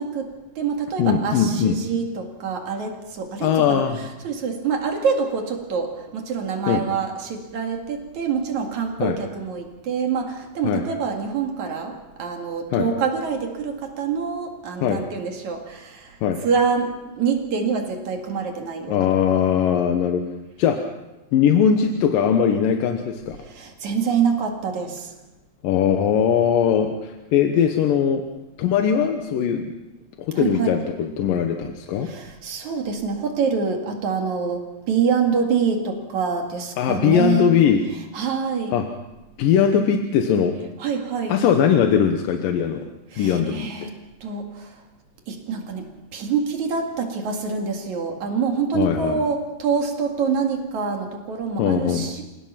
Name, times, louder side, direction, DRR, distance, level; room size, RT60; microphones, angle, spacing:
voice 1, 0.0-3.8 4.2-19.1 23.4-25.1 30.3-30.7 32.0-37.5 38.1-38.7 40.8-41.4 43.1-43.9 44.2-44.8 45.3-52.2, right 5 dB, 50° right, 3 dB, 3.1 m, -26 dB
voice 2, 1.0-1.8 3.4-4.1 6.7-6.8 9.0-9.2 10.6-10.8 12.7-12.9 14.8-15.0 16.2-16.4 18.9-20.2 20.6-20.8 21.3-23.4 25.6-28.2 28.6-29.7 30.2-32.1 36.8-37.8 38.7-38.9 39.4-40.6 41.3-42.8 43.2-43.9 48.7-49.2 51.6-52.1, left 8 dB, 65° left, 5 dB, 2.5 m, -20 dB
28.0 x 17.0 x 5.8 m, 1.0 s
omnidirectional pair, 4.7 m